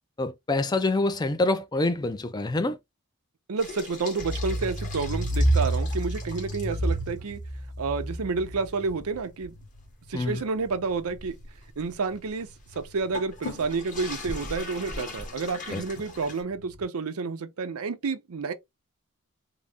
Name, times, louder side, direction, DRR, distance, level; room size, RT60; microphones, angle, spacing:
voice 1, 0.2-2.8 10.1-10.4 15.7-15.8, left 2 dB, 20° left, 0.4 m, -26 dB
voice 2, 3.5-7.4 7.8-9.5 10.1-11.3 11.8-12.5 12.8-18.5, right 4 dB, 85° right, 0.6 m, -30 dB
sound 1, 3.6-7.2 7.6-7.7 8.2-8.3 8.8-16.4, left 2 dB, 35° left, 1.2 m, -41 dB
sound 2, 4.2-11.4 11.8-13.1 13.6-13.7 14.0-14.1 14.5-14.6 14.8-14.9 15.2-15.4 15.7-16.8, right 1 dB, 60° left, 1.9 m, -30 dB
3.8 x 2.0 x 3.4 m
head